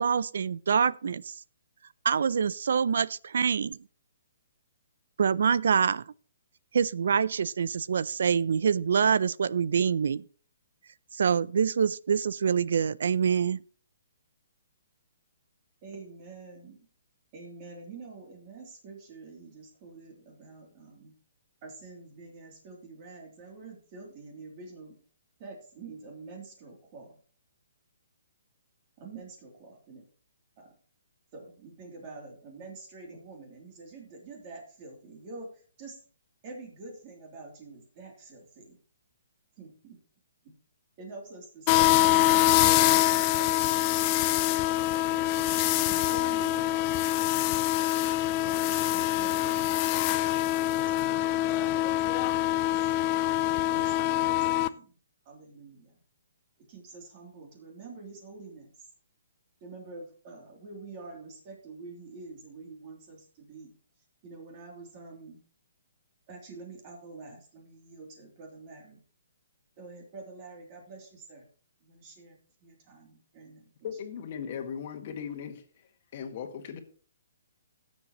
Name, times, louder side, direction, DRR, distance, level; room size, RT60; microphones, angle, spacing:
voice 1, 0.0-1.3 2.0-3.8 5.2-6.0 6.7-10.2 11.1-13.6, right 7 dB, 70° right, 0.4 m, -25 dB
voice 2, 15.8-16.9 17.3-21.1 21.6-24.9 25.4-27.2 29.0-30.1 30.6-30.7 31.3-36.0 36.4-38.8 39.6-40.0 41.0-44.3 45.1-47.8 48.4-49.9 50.6-52.9 53.7-55.0 55.2-56.0 56.6-58.9 59.6-63.7 64.2-65.4 66.3-69.0 69.8-71.5 71.8-74.0, right 3 dB, 30° right, 3.0 m, -47 dB
sound 1, 41.7-54.7, left 15 dB, 25° left, 0.5 m, -25 dB
voice 3, 73.8-75.6 76.1-76.8, left 7 dB, 40° left, 1.8 m, -37 dB
16.5 x 7.3 x 3.1 m
hypercardioid pair, 160°, 0 cm